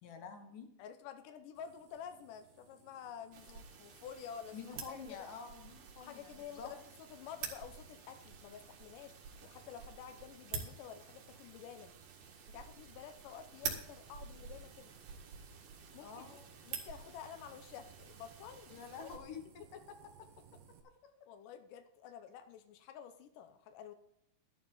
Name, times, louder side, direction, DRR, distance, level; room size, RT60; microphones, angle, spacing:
voice 1, 0.0-0.7 4.5-6.7 16.0-16.4 18.7-20.0 21.0-21.1, left 6 dB, 60° left, 5 dB, 2.7 m, -48 dB
voice 2, 0.8-5.0 6.0-11.9 12.5-14.9 15.9-16.4 16.7-18.7 19.0-19.1 21.3-23.9, left 8 dB, 85° left, 8 dB, 1.9 m, -50 dB
sound 1, 1.6-20.8, right 8 dB, 90° right, 3.8 m, -62 dB
sound 2, 3.3-19.2, right 6 dB, 70° right, 3.7 m, -49 dB
12.5 x 12.0 x 3.9 m, 0.73 s
omnidirectional pair, 4.9 m